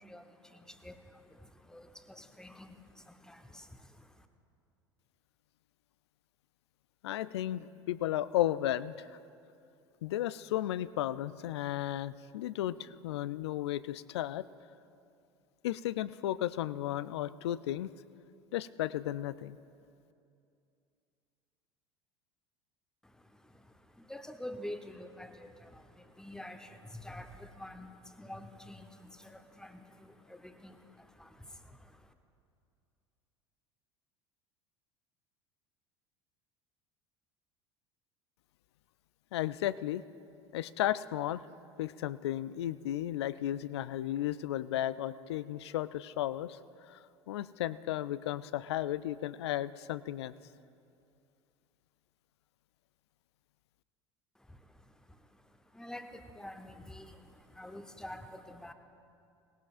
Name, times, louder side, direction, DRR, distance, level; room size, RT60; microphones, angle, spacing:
voice 1, 0.0-4.3 23.0-32.1 54.3-58.7, left 1 dB, 5° left, 7 dB, 0.9 m, -48 dB
voice 2, 7.0-9.1 10.0-14.5 15.6-17.9 18.5-19.6 39.3-40.0 40.5-41.4 41.8-46.6 46.9-47.0 47.3-50.3, left 13 dB, 70° left, 17 dB, 0.4 m, -34 dB
18.5 x 18.0 x 2.5 m, 2.5 s
figure-of-eight pair, 70°, 15 cm